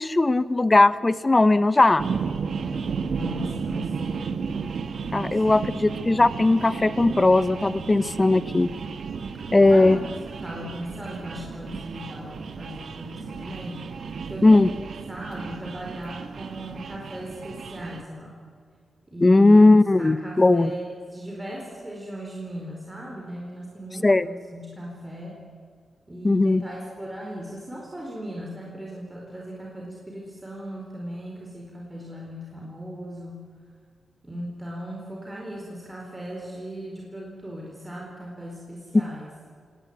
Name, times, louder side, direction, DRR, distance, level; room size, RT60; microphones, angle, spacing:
voice 1, 0.0-2.0 5.1-8.7 9.5-10.0 14.4-14.7 19.2-20.7 24.0-24.3 26.2-26.6, left 2 dB, 20° left, 14 dB, 0.7 m, -18 dB
sound 1, 2.0-18.0, right 5 dB, 65° right, 1.5 m, -33 dB
voice 2, 3.1-4.4 5.0-5.8 9.4-10.0 10.3-13.8 14.3-18.4 19.1-19.6 20.0-25.4 26.1-33.5 34.2-39.3, equal, 15° right, -2 dB, 4.5 m, -38 dB
28.5 x 19.0 x 9.6 m, 2.1 s
wide cardioid pair, 140°, 0 cm